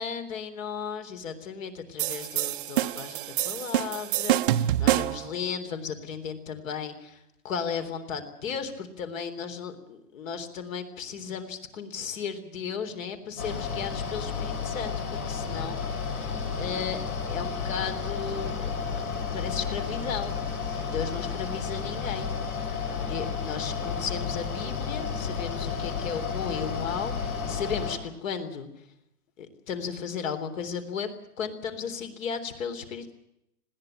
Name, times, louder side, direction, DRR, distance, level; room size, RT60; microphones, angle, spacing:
voice 1, 0.0-16.2 16.6-17.0 17.3-18.8 19.3-22.3 23.0-28.7 29.4-31.1 31.4-33.1, left 6 dB, 55° left, 9 dB, 3.8 m, -35 dB
sound 1, 2.0-5.3, right 13 dB, 35° right, 0.7 m, -26 dB
Mechanical fan, 13.4-28.0, left 5 dB, 75° left, 7.7 m, -32 dB
20.5 x 17.0 x 8.9 m, 0.81 s
hypercardioid pair, 150°, 46 cm